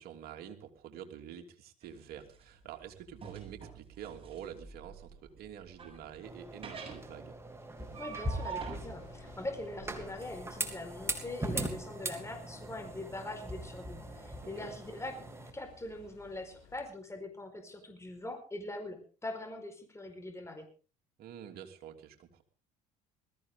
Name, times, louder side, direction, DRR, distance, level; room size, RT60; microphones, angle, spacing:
voice 1, 0.0-7.4 14.4-14.7 21.2-22.4, right 9 dB, 60° right, 3 dB, 2.9 m, -47 dB
sound 1, 1.8-11.4, right 6 dB, 30° right, 7.3 m, -47 dB
sound 2, 6.2-15.5, right 1 dB, 15° right, 3.0 m, -40 dB
sound 3, 7.8-16.9, left 7 dB, 70° left, 5.7 m, -58 dB
voice 2, 8.0-15.2 15.5-20.7, left 2 dB, 15° left, 6 dB, 4.7 m, -42 dB
20.5 x 14.5 x 3.7 m, 0.37 s
hypercardioid pair, 70°, 18 cm